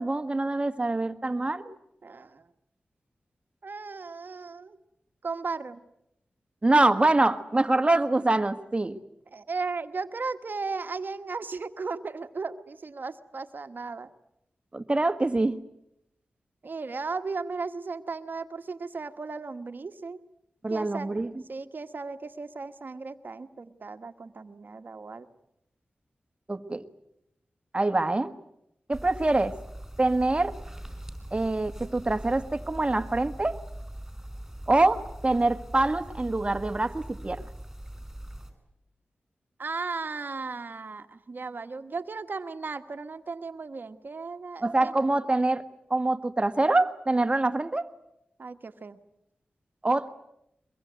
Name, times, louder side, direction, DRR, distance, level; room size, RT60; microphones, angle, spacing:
voice 1, 0.0-1.6 6.6-9.0 14.7-15.6 20.6-21.3 26.5-26.8 27.7-28.3 28.9-29.5 30.0-30.5 31.3-33.6 34.7-37.4 44.6-45.6 45.9-47.9 49.8-50.1, right 2 dB, 30° right, 9 dB, 1.5 m, -25 dB
voice 2, 2.0-2.5 3.6-4.8 5.2-5.8 9.3-14.1 16.6-20.2 20.7-21.1 21.5-25.3 39.6-44.9 48.4-49.0, right 4 dB, 60° right, 9 dB, 1.4 m, -36 dB
sound 1, 28.9-38.5, right 1 dB, 10° right, 5.7 m, -41 dB
23.0 x 22.5 x 9.4 m, 0.82 s
cardioid pair, 65°, 4 cm